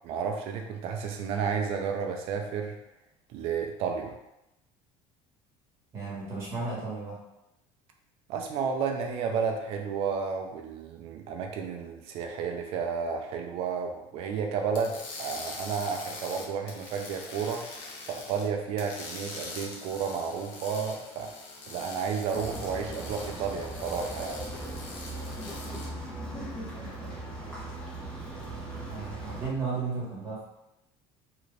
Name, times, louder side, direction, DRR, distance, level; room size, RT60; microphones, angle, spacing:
voice 1, 0.0-2.8 3.3-4.2 8.3-17.6 18.1-21.3 21.7-24.5, right 6 dB, 50° right, 3 dB, 0.5 m, -32 dB
voice 2, 5.9-7.2 28.9-30.4, right 4 dB, 20° right, -7 dB, 1.3 m, -34 dB
sound 1, 14.7-18.5 18.8-25.9, left 3 dB, 55° left, 0.7 m, -43 dB
sound 2, 22.3-29.5, right 1 dB, 5° left, 0.7 m, -39 dB
2.9 x 2.5 x 3.2 m, 0.91 s
cardioid pair, 170°, 12 cm